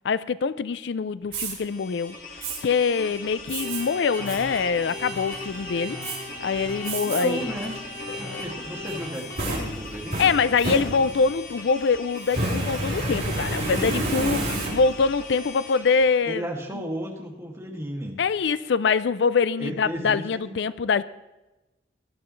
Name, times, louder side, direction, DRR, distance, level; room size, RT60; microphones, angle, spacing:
voice 1, 0.0-2.2 2.6-6.0 6.4-7.5 8.3-8.4 10.2-16.4 18.2-21.0, left 5 dB, 70° left, 16 dB, 0.4 m, -24 dB
Fire, 1.2-1.5 2.4-2.6 3.5-3.8 4.3-4.4 4.9-5.3 6.0-6.2 6.8-7.2 7.7-7.8 8.9-11.3 12.2-15.1, right 1 dB, 50° right, 4.8 m, -29 dB
sound 1, 1.5-16.2, left 3 dB, 45° left, 1.8 m, -41 dB
sound 2, 3.6-9.4, left 1 dB, 20° left, 4.5 m, -37 dB
voice 2, 7.0-7.8 8.2-10.3 16.3-18.2 19.6-20.6, equal, 15° right, -1 dB, 2.1 m, -34 dB
19.0 x 12.0 x 3.2 m, 1.0 s
head